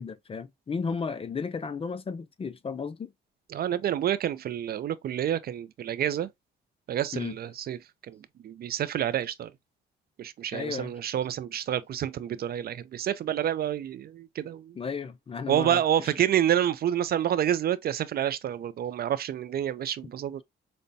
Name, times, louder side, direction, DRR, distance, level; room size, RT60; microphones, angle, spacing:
voice 1, 0.0-3.1 7.1-7.3 10.5-10.9 14.7-16.1, left 5 dB, 30° left, 0.4 m, -34 dB
voice 2, 3.5-6.3 6.9-7.8 8.1-8.2 8.4-9.5 10.2-14.7 15.5-20.4, right 10 dB, 50° right, 0.4 m, -28 dB
5.2 x 2.1 x 2.6 m
cardioid pair, 90°, 20 cm